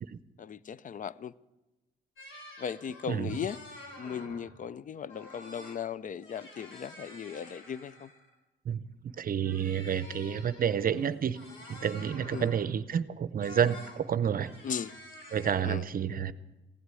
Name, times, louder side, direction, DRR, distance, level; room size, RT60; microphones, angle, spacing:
voice 1, 0.4-1.3 2.6-3.6 4.0-8.1 12.3-12.5 14.6-14.9 15.6-15.8, left 7 dB, 40° left, 0.5 m, -37 dB
sound 1, 2.2-4.6 5.1-5.8 6.1-8.3 9.4-12.7 13.4-14.0 14.3-15.5, left 1 dB, 85° left, 4.2 m, -49 dB
voice 2, 9.2-11.4 11.7-14.5 15.3-16.3, right 8 dB, 45° right, 0.7 m, -29 dB
16.0 x 8.1 x 9.7 m
cardioid pair, 90°, 20 cm